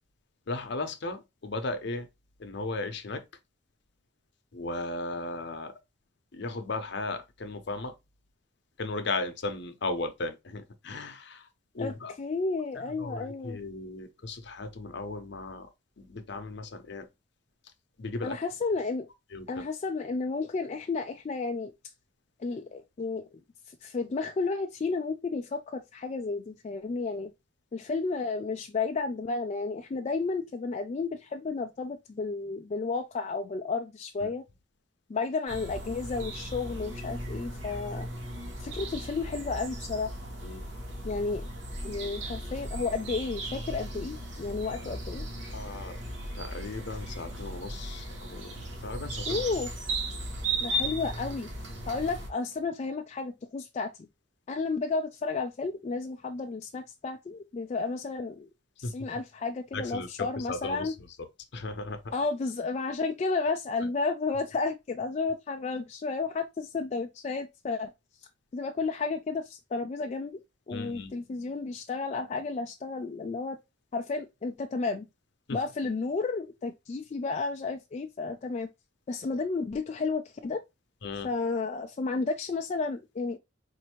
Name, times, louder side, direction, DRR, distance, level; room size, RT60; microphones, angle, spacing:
voice 1, 0.5-2.1 2.4-3.2 4.5-5.7 6.3-7.9 8.8-11.5 11.7-12.1 13.0-15.7 16.0-17.1 18.0-18.4 19.3-19.6 34.2-34.3 40.4-40.6 44.8-45.0 45.5-46.0 46.3-49.4 58.8-58.9 59.7-60.9 61.5-62.0 70.7-71.1 75.5-75.6 81.0-81.3, left 2 dB, 60° left, 0.7 m, -36 dB
voice 2, 11.8-13.6 18.2-19.1 19.5-21.7 22.4-23.2 23.7-27.3 27.7-34.4 35.1-38.1 38.6-40.1 41.0-41.4 41.8-45.2 49.3-49.7 50.6-51.5 51.9-54.1 54.5-58.5 58.8-60.9 62.1-67.9 68.5-70.4 70.7-73.6 73.9-75.1 75.5-78.7 79.1-80.6 81.2-83.4, left 4 dB, 35° left, 0.3 m, -32 dB
sound 1, 35.5-52.3, right 1 dB, 65° right, 1.2 m, -36 dB
4.2 x 2.6 x 2.9 m
head